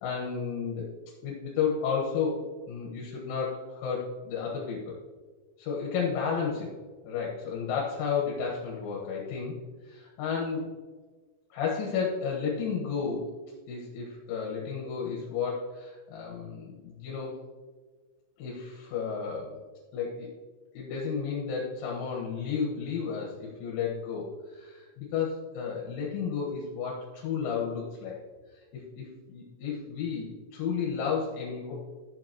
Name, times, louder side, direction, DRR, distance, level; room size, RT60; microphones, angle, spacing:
voice 1, 0.0-0.9 1.2-5.0 5.6-6.7 7.0-9.5 9.8-10.7 11.5-13.3 13.7-17.4 18.4-19.6 19.9-20.3 20.7-28.2 29.0-31.7, left 6 dB, 75° left, -3 dB, 3.7 m, -32 dB
13.0 x 8.0 x 3.0 m, 1.4 s
omnidirectional pair, 5.9 m